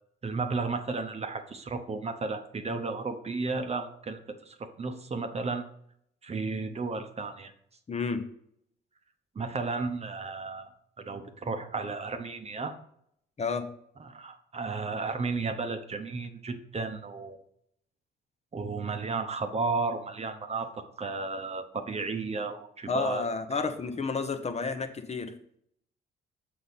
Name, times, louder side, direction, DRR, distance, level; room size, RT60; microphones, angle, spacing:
voice 1, 0.2-5.6 6.2-7.5 9.3-10.7 11.0-12.7 14.0-17.4 18.5-23.2 23.5-23.6, right 4 dB, 30° right, 8 dB, 0.9 m, -33 dB
voice 2, 7.9-8.2 13.4-13.7 22.9-25.3, left 4 dB, 35° left, 8 dB, 0.8 m, -31 dB
6.7 x 5.5 x 4.0 m, 0.69 s
cardioid pair, 90°, 20 cm